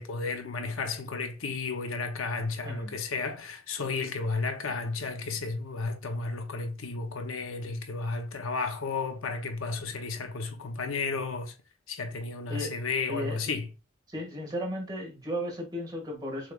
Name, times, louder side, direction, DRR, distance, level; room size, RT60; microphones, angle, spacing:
voice 1, 0.0-11.5 11.9-13.7, left 4 dB, 75° left, 0.8 m, -33 dB
voice 2, 2.6-3.0 12.5-12.8 13.1-13.6 14.1-16.5, equal, 20° right, 1.9 m, -35 dB
6.6 x 3.2 x 2.4 m
head